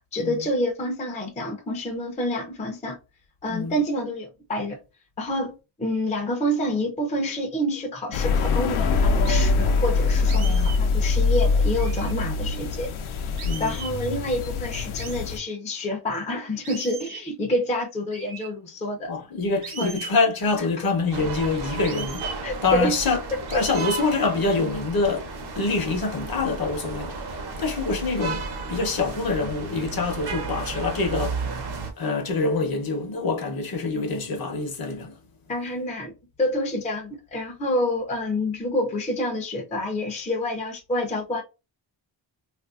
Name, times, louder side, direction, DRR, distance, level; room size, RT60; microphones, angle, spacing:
voice 1, 0.1-3.0 3.4-4.8 5.2-12.9 13.3-19.1 19.8-20.0 22.4-23.0 35.5-41.4, left 1 dB, 15° left, 0.5 m, -28 dB
voice 2, 3.5-3.8 10.3-10.7 12.2-12.3 13.4-13.8 19.1-23.2 23.5-31.4 32.0-35.1, left 3 dB, 45° left, 0.8 m, -26 dB
sound 1, 8.1-15.4, left 4 dB, 80° left, 0.7 m, -23 dB
sound 2, 9.2-9.5 10.3-10.8 11.7-12.2 13.4-14.0 15.0-15.3 16.6-17.3 18.1-18.5 19.6-20.2 21.8-22.4 23.5-24.1, right 6 dB, 80° right, 0.9 m, -38 dB
sound 3, 21.1-31.9, right 4 dB, 50° right, 0.8 m, -33 dB
3.3 x 2.5 x 2.3 m
wide cardioid pair, 130°, 49 cm